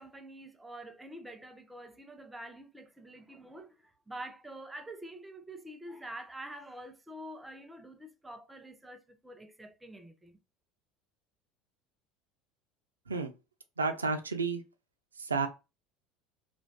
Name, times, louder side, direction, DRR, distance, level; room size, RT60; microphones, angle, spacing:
voice 1, 0.0-10.4, right 1 dB, 10° right, 0.4 m, -46 dB
voice 2, 13.8-14.6 15.2-15.5, right 4 dB, 85° right, 0.3 m, -31 dB
2.4 x 2.2 x 2.3 m
figure-of-eight pair, 70°, 0 cm